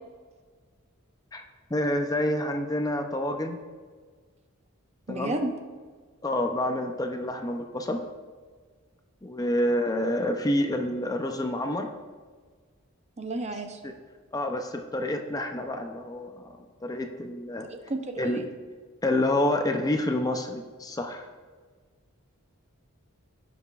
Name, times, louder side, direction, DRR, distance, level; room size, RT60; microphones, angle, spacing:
voice 1, 1.7-3.6 5.1-5.3 6.2-8.0 9.2-11.9 13.8-13.9 14.3-16.5 16.8-17.7 18.2-18.4 19.0-21.2, left 1 dB, 15° left, 4 dB, 0.5 m, -28 dB
voice 2, 5.1-5.5 13.2-13.8 17.6-18.5, right 2 dB, 30° right, 6 dB, 0.6 m, -32 dB
16.5 x 6.0 x 2.4 m, 1.5 s
head